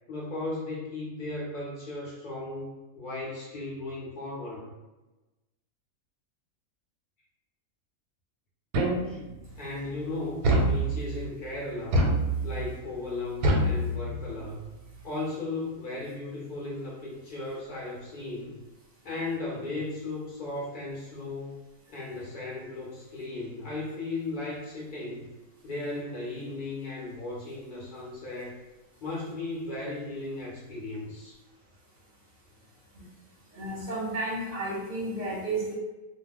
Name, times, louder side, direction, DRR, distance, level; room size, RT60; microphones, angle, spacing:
voice 1, 0.1-4.7 9.1-9.2 9.6-12.1 12.4-14.6 15.0-18.6 19.0-21.6 21.9-25.3 25.6-28.6 29.0-31.3, left 2 dB, 60° left, -4 dB, 0.5 m, -36 dB
sound 1, 8.7-9.4 10.4-11.3 11.9-12.7 13.4-14.4, right 1 dB, 85° right, 1.1 m, -26 dB
voice 2, 33.5-35.7, right 2 dB, 35° right, -7 dB, 0.7 m, -32 dB
2.3 x 2.1 x 3.4 m, 1.1 s
omnidirectional pair, 1.5 m